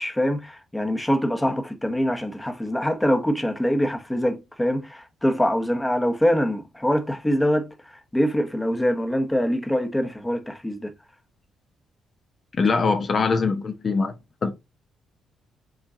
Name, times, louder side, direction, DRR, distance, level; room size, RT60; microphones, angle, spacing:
voice 1, 0.0-7.7 8.1-10.9, equal, 10° left, 0.9 m, -24 dB
voice 2, 12.5-14.1 14.4-14.5, left 4 dB, 45° left, 0.7 m, -22 dB
4.9 x 3.7 x 2.8 m
cardioid pair, 90°, 0 cm